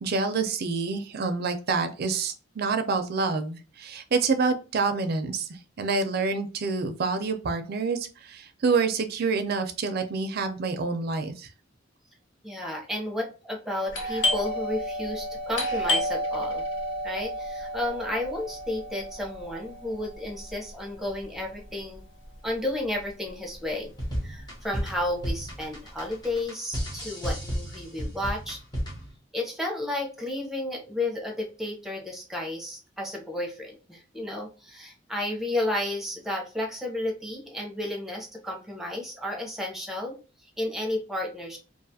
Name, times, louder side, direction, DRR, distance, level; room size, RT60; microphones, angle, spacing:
voice 1, 0.0-11.5, right 4 dB, 55° right, 7 dB, 0.5 m, -27 dB
voice 2, 12.4-16.6 17.0-22.0 22.4-23.9 24.2-28.6 29.3-41.6, left 1 dB, ahead, 0 dB, 0.7 m, -32 dB
Doorbell, 13.9-23.3 23.5-23.6 24.3-24.6 24.9-26.3, left 1 dB, 75° left, 0.8 m, -31 dB
sound 1, 23.9-29.2, equal, 20° left, 1.0 m, -33 dB
2.4 x 2.3 x 2.7 m, 0.34 s
head